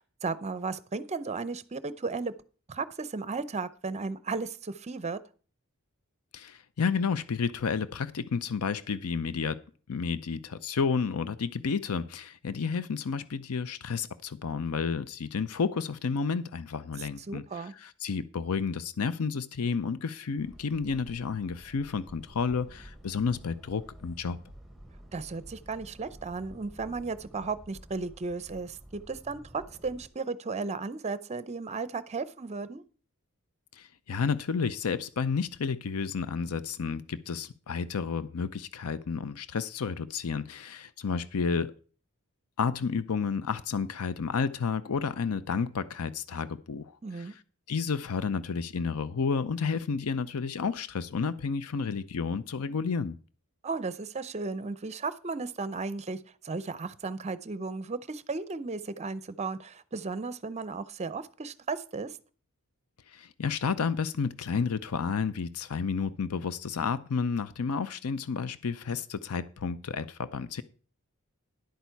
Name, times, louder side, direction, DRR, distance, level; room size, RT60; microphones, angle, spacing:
voice 1, 0.0-2.3 2.7-5.2 17.0-17.7 25.1-32.8 47.0-47.3 53.6-62.2, right 4 dB, 30° right, 0.6 m, -35 dB
voice 2, 6.3-9.6 9.9-24.4 33.8-41.7 42.6-47.4 47.7-53.2 63.1-70.6, left 5 dB, 85° left, 0.6 m, -31 dB
sound 1, 20.4-30.1, right 1 dB, ahead, 1.2 m, -51 dB
10.5 x 8.3 x 4.6 m
head